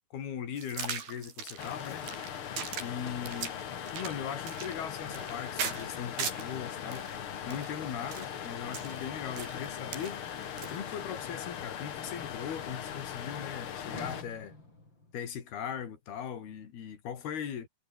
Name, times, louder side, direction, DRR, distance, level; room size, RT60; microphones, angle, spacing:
voice 1, 0.1-2.1 2.8-3.5 3.9-7.2 7.5-10.2 10.7-14.6 15.1-17.7, left 8 dB, 75° left, 5.1 m, -39 dB
sound 1, 0.6-6.5 6.9-10.9, right 7 dB, 70° right, 6.0 m, -40 dB
sound 2, 1.6-14.2, left 9 dB, 55° left, 1.5 m, -40 dB
Sliding door, 10.6-15.6, left 2 dB, 30° left, 8.0 m, -54 dB
omnidirectional pair, 4.5 m